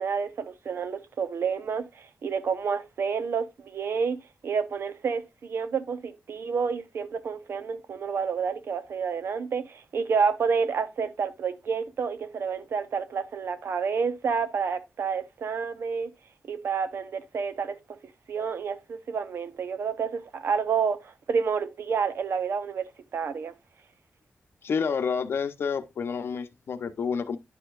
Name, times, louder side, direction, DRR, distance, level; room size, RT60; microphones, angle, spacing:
voice 1, 0.0-16.1 16.5-18.0 18.3-22.8 23.1-23.5, right 6 dB, 70° right, 0.9 m, -29 dB
voice 2, 24.6-27.4, left 6 dB, 70° left, 0.8 m, -29 dB
10.0 x 6.8 x 2.4 m
wide cardioid pair, 175°, 4 cm